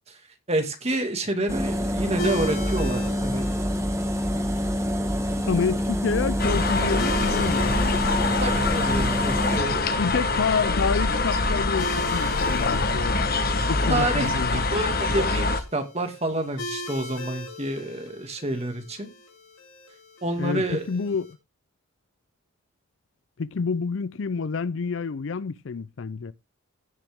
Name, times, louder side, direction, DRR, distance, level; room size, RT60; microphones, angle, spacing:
voice 1, 0.5-3.5 8.4-9.9 13.9-19.1 20.2-20.9, right 1 dB, 30° right, 2.2 m, -28 dB
sound 1, 1.5-9.6, equal, 15° right, 1.4 m, -26 dB
sound 2, 2.2-21.3, left 1 dB, 85° left, 2.9 m, -40 dB
voice 2, 5.5-8.0 10.0-13.2 13.7-14.8 20.4-21.4 23.4-26.3, left 5 dB, 65° left, 0.5 m, -28 dB
sound 3, 6.4-15.6, left 3 dB, 45° left, 1.2 m, -24 dB
16.5 x 6.1 x 3.6 m
head